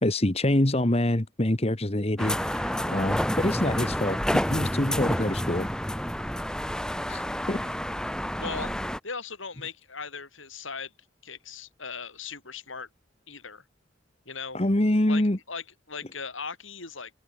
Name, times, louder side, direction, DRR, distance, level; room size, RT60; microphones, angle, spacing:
voice 1, 0.0-5.7 7.1-7.6 14.5-15.4, left 1 dB, 30° left, 1.4 m, -26 dB
sound 1, 2.2-9.0, equal, 5° left, 1.6 m, -29 dB
voice 2, 8.4-8.7 9.0-10.9 11.2-12.9 13.3-13.6 14.3-14.6 15.1-15.2 15.5-17.1, left 5 dB, 75° left, 6.9 m, -38 dB
open air
head